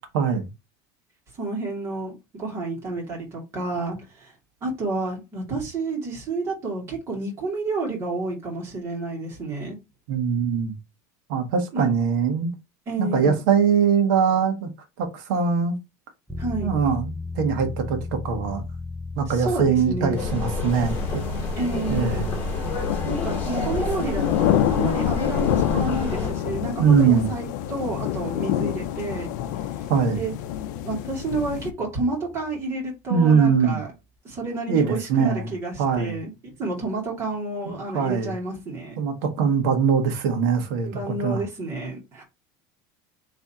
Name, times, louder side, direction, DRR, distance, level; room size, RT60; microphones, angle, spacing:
voice 1, 1.4-4.3 4.6-9.8 11.7-11.9 12.9-13.4 16.4-16.7 19.3-20.2 21.5-22.3 23.0-29.3 30.2-30.3 30.8-33.9 34.2-39.0 40.8-42.2, right 2 dB, 25° right, 2.3 m, -30 dB
voice 2, 10.1-10.8 11.3-12.5 13.0-14.7 15.0-15.8 16.6-18.6 19.1-21.2 21.9-22.3 26.8-27.3 29.9-30.2 33.1-33.8 34.7-35.5 35.8-36.2 37.9-38.4 39.0-41.4, right 6 dB, 75° right, 1.3 m, -22 dB
sound 1, 16.3-32.6, left 3 dB, ahead, 0.5 m, -39 dB
sound 2, 20.1-26.3, left 3 dB, 15° left, 2.2 m, -28 dB
sound 3, 20.8-31.7, left 11 dB, 75° left, 0.5 m, -27 dB
3.7 x 3.3 x 4.2 m
cardioid pair, 175°, 10 cm